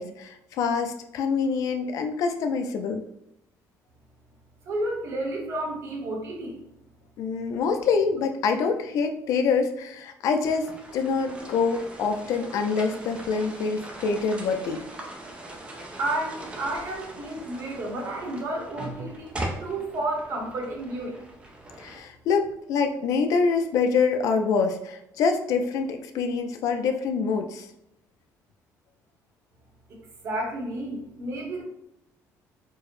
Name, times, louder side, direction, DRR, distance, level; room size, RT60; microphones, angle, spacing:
voice 1, 0.0-3.1 7.2-14.8 21.8-27.7, left 5 dB, 60° left, 6 dB, 0.4 m, -25 dB
voice 2, 4.7-6.6 16.0-19.3 19.6-21.1 30.2-31.6, right 1 dB, 45° right, 1 dB, 0.9 m, -31 dB
sound 1, 10.4-22.0, right 1 dB, 15° right, 0.4 m, -40 dB
4.4 x 2.1 x 3.0 m, 0.79 s
cardioid pair, 175°, 6 cm